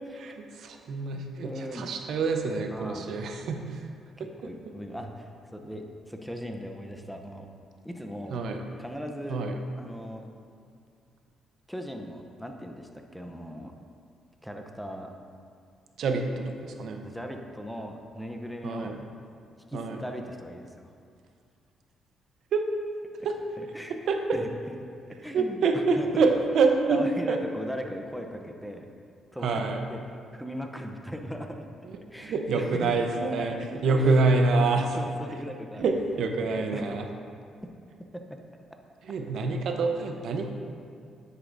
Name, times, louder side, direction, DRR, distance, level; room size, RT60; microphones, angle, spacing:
voice 1, 0.1-3.9 4.2-4.5 8.3-8.6 9.3-9.5 16.0-17.1 18.6-19.0 19.7-20.0 22.5-22.6 23.2-23.4 24.1-24.4 25.3-27.0 27.3-27.4 29.4-29.9 31.9-33.6 33.8-35.0 35.8-37.1 39.0-40.5, right 3 dB, 70° right, 4 dB, 0.8 m, -26 dB
voice 2, 1.1-1.8 2.7-3.1 4.2-7.5 7.8-8.4 8.8-9.4 9.8-10.2 11.7-13.7 14.4-15.1 17.0-19.0 19.7-20.8 23.6-24.0 24.3-24.7 25.2-25.6 26.0-26.2 26.9-28.9 29.3-29.6 29.9-30.0 30.3-31.7 32.1-33.7 34.6-35.8 36.4-36.8 38.1-38.2, equal, ahead, 4 dB, 0.7 m, -38 dB
9.6 x 8.2 x 2.7 m, 2.3 s
cardioid pair, 90°, 0 cm